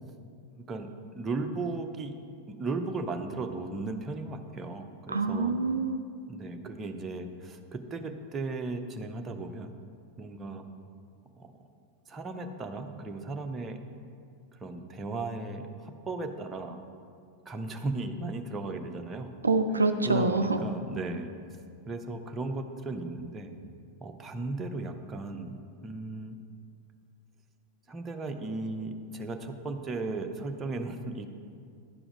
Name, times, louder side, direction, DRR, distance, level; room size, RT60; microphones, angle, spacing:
voice 1, 0.7-2.1 2.5-5.5 6.3-9.7 10.2-10.7 11.4-11.7 12.1-13.8 14.5-16.8 17.5-19.3 20.0-21.3 21.9-23.5 24.0-26.4 27.9-31.3, right 3 dB, 20° right, 5 dB, 0.6 m, -36 dB
voice 2, 5.1-6.0 19.4-20.6, right 3 dB, 80° right, 7 dB, 0.3 m, -26 dB
10.5 x 4.9 x 4.9 m, 2.3 s
figure-of-eight pair, 90°, 0 cm